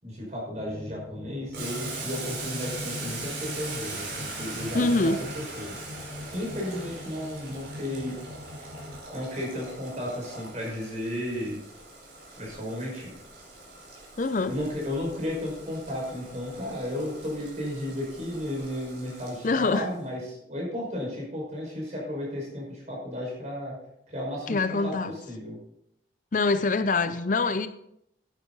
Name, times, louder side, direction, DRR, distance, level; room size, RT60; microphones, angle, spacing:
voice 1, 0.0-5.3 5.6-5.9 6.3-8.1 9.1-11.6 12.4-13.1 14.5-23.8 24.1-24.6 24.8-24.9 25.3-25.6, left 1 dB, 40° right, -2 dB, 5.2 m, -33 dB
sound 1, 0.5-9.0, left 2 dB, 90° right, 4.5 m, -42 dB
Boiling, 1.5-20.0, right 3 dB, 70° right, 4.9 m, -41 dB
voice 2, 4.7-5.2 14.2-14.5 19.4-19.9 24.5-25.2 26.3-27.7, left 3 dB, 45° left, 11 dB, 0.5 m, -24 dB
11.0 x 10.0 x 4.0 m, 0.76 s
head